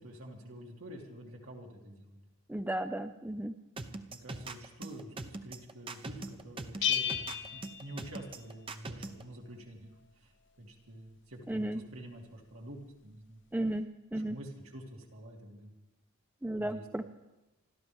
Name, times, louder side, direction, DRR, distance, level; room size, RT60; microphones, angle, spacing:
voice 1, 0.0-2.2 3.9-9.9 10.2-13.4 14.1-15.7 16.6-16.9, right 1 dB, 70° right, -1 dB, 2.8 m, -48 dB
voice 2, 2.5-3.5 11.5-11.8 13.5-14.4 16.4-17.1, right 1 dB, 10° right, 9 dB, 0.4 m, -34 dB
sound 1, 3.8-9.2, right 2 dB, 25° right, 0.8 m, -41 dB
Bell, 6.8-8.6, left 8 dB, 55° left, 0.8 m, -34 dB
28.0 x 13.0 x 3.5 m, 1.0 s
head